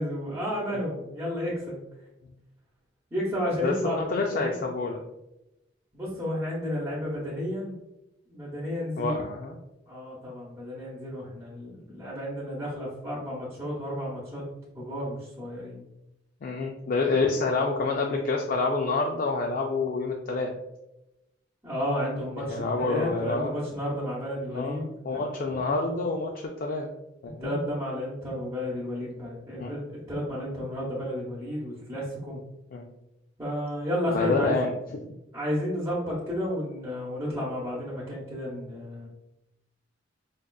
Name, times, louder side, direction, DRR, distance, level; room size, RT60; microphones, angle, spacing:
voice 1, 0.0-1.8 3.1-4.0 4.3-4.5 5.9-7.7 8.3-9.1 9.9-14.4 14.7-15.8 21.6-24.8 25.1-25.7 27.4-32.4 33.4-34.6 35.3-39.1, equal, 15° right, -9 dB, 0.8 m, -32 dB
voice 2, 3.6-5.0 9.0-9.6 16.4-20.5 22.4-23.5 24.5-26.9 27.2-27.6 29.6-29.9 32.7-32.9 34.1-35.0, left 3 dB, 50° left, 1 dB, 0.3 m, -28 dB
4.8 x 2.3 x 2.3 m, 0.91 s
head